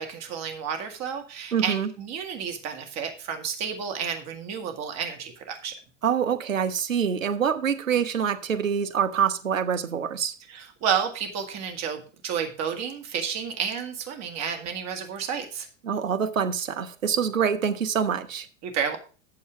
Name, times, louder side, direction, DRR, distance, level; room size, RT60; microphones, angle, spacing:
voice 1, 0.0-5.7 10.5-15.7 18.6-19.0, right 7 dB, 45° right, 5 dB, 2.0 m, -31 dB
voice 2, 1.5-1.9 6.0-10.3 15.8-18.5, right 7 dB, 90° right, 8 dB, 1.1 m, -25 dB
8.8 x 6.9 x 4.9 m, 0.36 s
hypercardioid pair, 95°, 38 cm